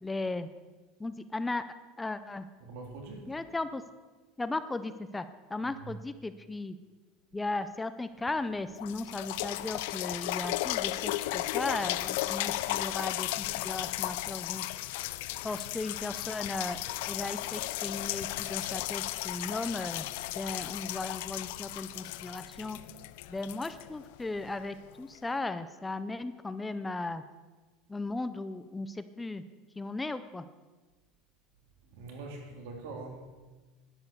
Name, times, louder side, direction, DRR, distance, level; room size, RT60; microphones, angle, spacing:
voice 1, 0.0-0.5 1.0-1.6 2.0-2.5 3.3-3.8 4.4-6.8 7.3-14.7 15.4-16.8 17.1-20.1 20.3-22.8 23.3-27.2 27.9-29.4 29.8-30.5, left 2 dB, 10° left, 12 dB, 0.6 m, -36 dB
voice 2, 2.7-3.3 5.6-5.8 31.9-33.3, right 3 dB, 75° right, 2 dB, 3.4 m, -43 dB
sound 1, 8.3-8.4 8.8-24.5 25.1-25.2, left 16 dB, 75° left, 0.6 m, -35 dB
11.5 x 10.5 x 6.8 m, 1.3 s
supercardioid pair, 140°, 0 cm